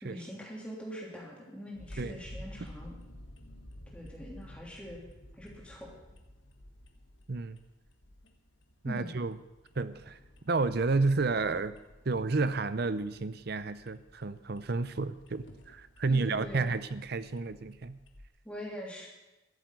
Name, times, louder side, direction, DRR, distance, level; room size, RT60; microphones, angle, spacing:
voice 1, 0.0-2.9 3.9-5.0 5.4-5.9 8.8-9.1 16.1-16.7 18.4-19.1, equal, 5° left, -3 dB, 3.1 m, -43 dB
sound 1, 1.7-18.3, left 1 dB, 65° left, 1.5 m, -52 dB
voice 2, 8.8-9.4 9.8-10.2 10.4-11.8 12.0-18.0, right 3 dB, 50° right, 14 dB, 0.6 m, -31 dB
13.5 x 7.8 x 8.3 m, 1.0 s
head